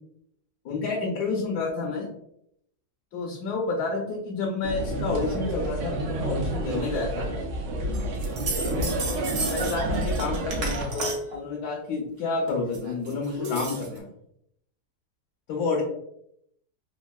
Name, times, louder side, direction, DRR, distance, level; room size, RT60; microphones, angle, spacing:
voice 1, 0.6-2.1 3.1-7.3 8.7-14.1 15.5-15.8, left 3 dB, 75° left, -1 dB, 1.1 m, -30 dB
sound 1, 4.6-10.8, right 1 dB, 90° right, 1.2 m, -29 dB
sound 2, 7.9-11.4 12.5-14.0, right 2 dB, 65° right, 1.1 m, -33 dB
3.4 x 2.3 x 2.2 m, 0.74 s
omnidirectional pair, 1.8 m